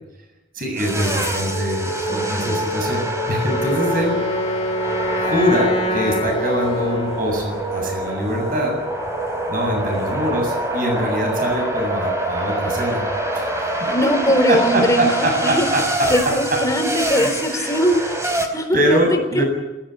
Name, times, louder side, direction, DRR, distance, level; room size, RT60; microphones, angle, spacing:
voice 1, 0.5-4.2 5.2-8.8 9.5-13.0 13.3-13.9 14.5-16.1 17.0-17.8 18.7-19.4, equal, 45° right, 3 dB, 7.7 m, -23 dB
sound 1, 0.8-18.5, right 1 dB, 15° right, 4.2 m, -25 dB
voice 2, 2.1-2.7 13.9-15.7 16.1-19.4, equal, 15° left, 4 dB, 3.9 m, -21 dB
Wind instrument woodwind instrument, 3.4-7.4, left 1 dB, 35° left, 2.0 m, -25 dB
26.5 x 15.0 x 9.8 m, 0.99 s
head